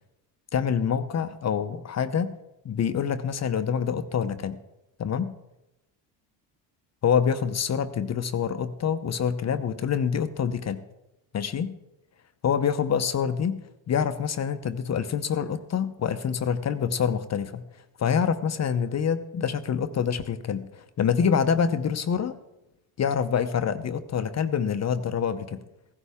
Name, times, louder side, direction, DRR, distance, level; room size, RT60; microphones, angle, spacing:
voice 1, 0.5-2.4 2.6-4.6 5.0-5.3 7.0-10.8 11.3-11.8 12.4-13.6 13.9-17.6 18.0-22.3 23.0-25.6, left 7 dB, 35° left, 10 dB, 0.7 m, -26 dB
15.5 x 11.5 x 3.5 m, 0.92 s
cardioid pair, 95°, 44 cm